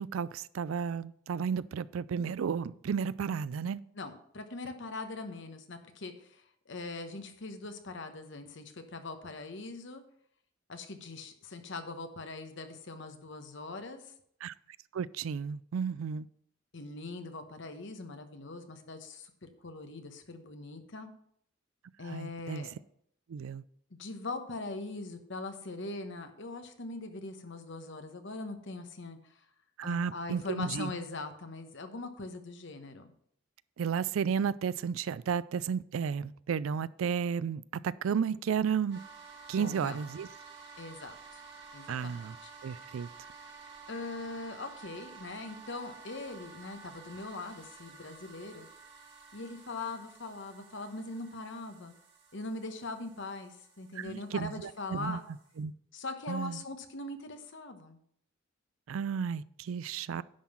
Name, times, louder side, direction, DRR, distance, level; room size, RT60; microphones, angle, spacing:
voice 1, 0.0-3.8 14.4-14.5 14.9-16.3 22.1-22.6 23.3-23.6 29.8-30.9 33.8-39.0 39.5-40.3 41.9-42.4 42.6-43.1 54.0-55.2 55.6-55.7 56.3-56.6 58.9-60.2, right 7 dB, 85° right, 0.4 m, -33 dB
voice 2, 3.9-10.0 10.7-14.1 16.7-21.1 22.0-22.7 23.9-29.4 29.8-33.1 39.6-40.0 40.8-41.4 41.7-42.5 43.9-48.7 49.3-51.9 52.3-55.3 55.9-58.0, left 3 dB, 65° left, 1.1 m, -41 dB
sound 1, 38.9-55.6, right 5 dB, 60° right, 1.8 m, -52 dB
10.5 x 3.8 x 7.2 m
head